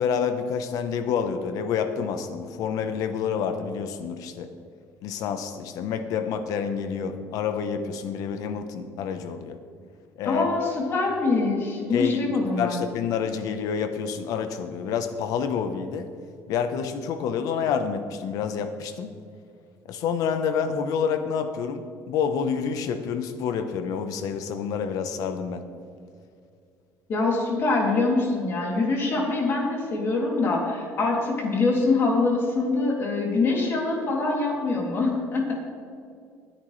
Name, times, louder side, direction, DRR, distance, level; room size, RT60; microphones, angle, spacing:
voice 1, 0.0-4.5 5.0-9.6 10.2-10.5 11.9-12.2 12.6-16.1 16.5-19.1 19.9-25.7, left 6 dB, 70° left, 9 dB, 0.9 m, -28 dB
voice 2, 10.2-12.8 27.1-35.6, left 3 dB, 40° left, -1 dB, 2.8 m, -24 dB
19.5 x 10.5 x 3.2 m, 2.3 s
cardioid pair, 155°, 6 cm